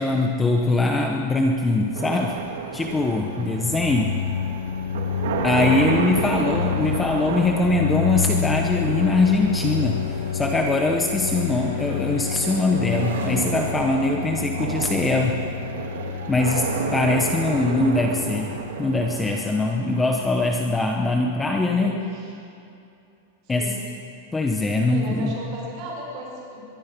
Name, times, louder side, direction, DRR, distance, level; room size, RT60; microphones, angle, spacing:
voice 1, 0.0-2.4 2.7-4.2 5.4-10.1 10.3-15.5 16.3-21.9 23.5-23.8 24.3-25.3, left 2 dB, 10° left, 2 dB, 0.9 m, -22 dB
sound 1, 1.9-21.0, right 6 dB, 70° right, 2.8 m, -32 dB
sound 2, 2.8-19.5, left 8 dB, 90° left, 0.8 m, -29 dB
sound 3, 9.1-18.3 18.7-19.0, right 4 dB, 90° right, 3.9 m, -43 dB
voice 2, 21.7-22.3 23.4-23.8 24.9-26.6, right 1 dB, 35° right, -3 dB, 6.5 m, -36 dB
24.0 x 22.5 x 5.2 m, 2.6 s
supercardioid pair, 175°, 0 cm